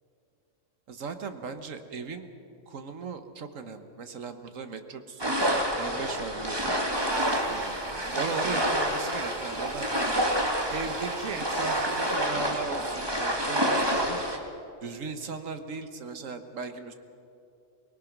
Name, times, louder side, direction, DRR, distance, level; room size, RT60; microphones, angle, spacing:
voice 1, 0.9-2.3 2.7-5.3 5.8-6.7 7.5-7.7 8.1-9.9 10.7-14.2 14.8-16.9, right 5 dB, 80° right, 8 dB, 1.6 m, -37 dB
sound 1, 5.2-14.4, equal, 20° right, 1.8 m, -28 dB
sound 2, 6.9-12.2, right 3 dB, 35° right, 1.9 m, -39 dB
24.0 x 19.5 x 6.0 m, 2.6 s
omnidirectional pair, 1.3 m